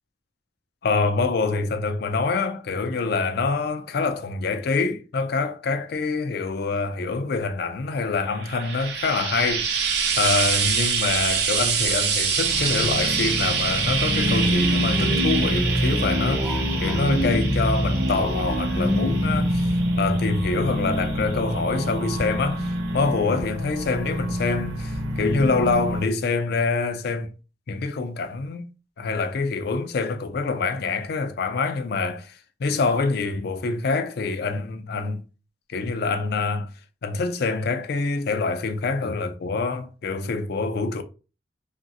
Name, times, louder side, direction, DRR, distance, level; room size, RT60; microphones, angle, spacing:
voice 1, 0.8-9.7 10.2-16.5 16.8-19.7 20.0-22.7 22.9-27.3 27.7-28.7 29.0-32.3 32.6-35.2 35.7-36.7 37.0-41.0, left 4 dB, 55° left, 0.4 m, -25 dB
Frying (food), 8.3-21.7 22.7-22.8, right 6 dB, 60° right, 0.6 m, -26 dB
sound 1, 12.4-26.0, equal, 75° right, 0.9 m, -28 dB
sound 2, 13.8-21.0, equal, 5° right, 0.6 m, -27 dB
3.0 x 2.5 x 2.7 m
head